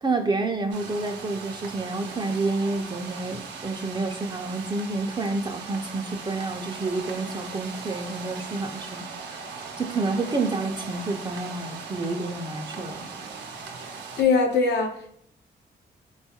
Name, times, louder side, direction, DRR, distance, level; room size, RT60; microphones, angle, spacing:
voice 1, 0.0-9.4 9.8-13.1, right 3 dB, 25° right, 3 dB, 0.4 m, -29 dB
sound 1, 0.7-14.2, right 5 dB, 85° right, 0.5 m, -39 dB
voice 2, 14.2-15.1, left 4 dB, 75° left, 2 dB, 0.7 m, -21 dB
3.8 x 2.3 x 2.8 m, 0.67 s
cardioid pair, 65°, 18 cm